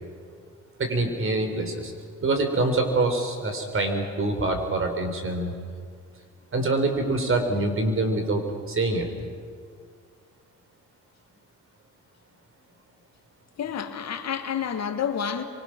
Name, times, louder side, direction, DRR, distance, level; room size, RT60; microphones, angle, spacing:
voice 1, 0.8-1.9 2.2-5.5 6.5-9.1, right 2 dB, 45° right, 4.4 m, -25 dB
voice 2, 13.6-15.4, left 8 dB, 60° left, 1.9 m, -29 dB
27.0 x 24.0 x 6.2 m
cardioid pair, 90°, 30 cm